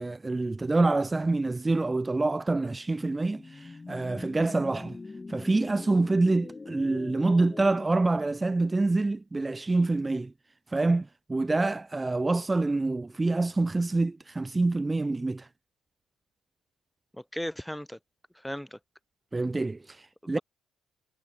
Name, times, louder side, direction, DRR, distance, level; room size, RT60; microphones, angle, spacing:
voice 1, 0.0-5.0 5.3-10.3 10.7-15.5 19.3-20.4, right 2 dB, 20° right, 3.6 m, -26 dB
sound 1, 2.4-7.9, left 3 dB, 25° left, 3.9 m, -43 dB
voice 2, 17.1-18.0 18.3-18.8 20.2-20.4, equal, ahead, 6.8 m, -36 dB
supercardioid pair, 70°, 0 cm